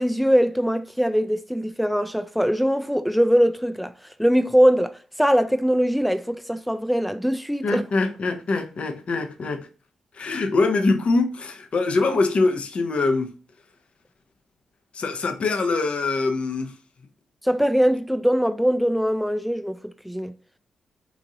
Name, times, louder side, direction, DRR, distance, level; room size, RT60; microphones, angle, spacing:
voice 1, 0.0-3.9 4.2-7.8 17.4-20.3, equal, ahead, 0.4 m, -21 dB
voice 2, 7.6-9.7 10.2-13.3 14.9-16.7, left 3 dB, 55° left, 0.7 m, -23 dB
3.0 x 2.6 x 3.9 m
supercardioid pair, 45°, 2 cm